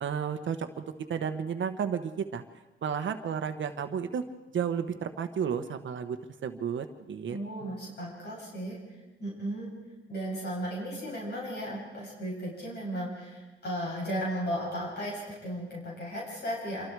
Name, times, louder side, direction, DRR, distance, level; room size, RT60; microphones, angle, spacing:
voice 1, 0.0-2.4 2.8-4.2 4.5-6.2 6.4-7.8, right 7 dB, 70° right, 7 dB, 1.2 m, -32 dB
voice 2, 7.3-8.8 9.2-9.7 10.1-16.9, equal, 55° left, -4 dB, 8.0 m, -35 dB
26.5 x 23.5 x 4.7 m, 1.1 s
wide cardioid pair, 120°, 20 cm